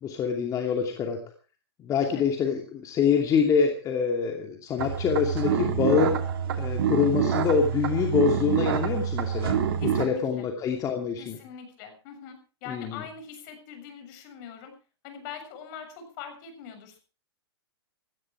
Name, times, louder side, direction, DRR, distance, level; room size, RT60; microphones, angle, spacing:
voice 1, 0.0-1.2 1.8-6.2 6.6-9.6 9.8-11.4 12.7-12.9, left 6 dB, 25° left, 3 dB, 2.7 m, -25 dB
sound 1, 4.8-10.0, right 8 dB, 60° right, 3.2 m, -27 dB
voice 2, 9.8-10.5 11.2-14.7 15.0-17.0, left 7 dB, 45° left, 7 dB, 7.1 m, -42 dB
17.0 x 15.0 x 4.8 m, 0.36 s
hypercardioid pair, 125°, 14 cm